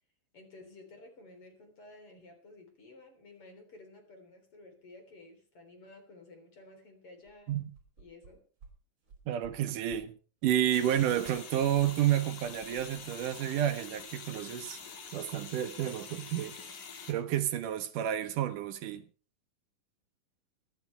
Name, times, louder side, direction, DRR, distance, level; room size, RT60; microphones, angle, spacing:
voice 1, 0.3-7.6 8.0-8.4, left 2 dB, 40° left, 4.4 m, -53 dB
sound 1, 7.2-8.3 8.6-8.7 9.0-9.5 9.8-10.0 10.4-10.6 10.9-12.0 12.4-14.0 14.3-14.4, right 5 dB, 35° right, 5.7 m, -55 dB
voice 2, 9.3-10.1 10.4-14.8 15.1-16.5 17.1-19.0, right 11 dB, 75° right, 2.4 m, -30 dB
sound 2, 10.7-17.1, left 5 dB, 60° left, 3.6 m, -46 dB
24.0 x 11.5 x 3.3 m
omnidirectional pair, 3.9 m